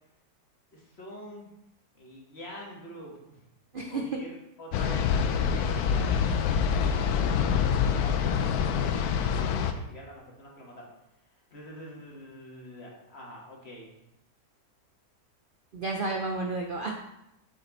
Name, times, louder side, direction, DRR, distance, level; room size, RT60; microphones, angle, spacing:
voice 1, 0.7-1.5 1.9-3.4 3.9-10.9 11.5-13.9, equal, 40° left, -2 dB, 1.7 m, -46 dB
sound 1, 4.7-9.7, left 7 dB, 70° left, 1.0 m, -26 dB
voice 2, 15.7-16.9, right 3 dB, 75° right, 1 dB, 0.4 m, -31 dB
6.7 x 5.0 x 4.0 m, 0.84 s
omnidirectional pair, 1.8 m